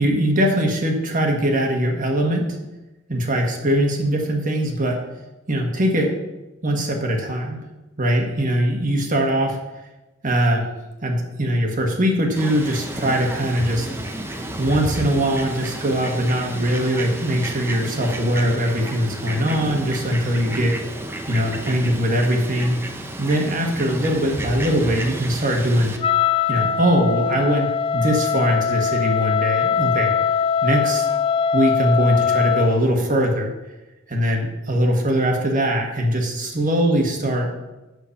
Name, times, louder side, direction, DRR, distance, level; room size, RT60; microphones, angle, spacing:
voice 1, 0.0-2.5 3.1-5.0 5.5-6.1 6.6-7.6 8.0-9.6 10.2-10.6 11.0-13.9 14.6-20.8 21.3-22.8 23.2-25.9 26.5-30.1 30.6-31.0 31.5-33.5 34.1-37.5, equal, 45° right, 1 dB, 1.6 m, -21 dB
Fowl, 12.4-26.0, right 1 dB, 10° right, 0.8 m, -31 dB
Wind instrument woodwind instrument, 26.0-32.8, left 7 dB, 30° left, 0.3 m, -21 dB
7.9 x 6.9 x 5.8 m, 1.1 s
head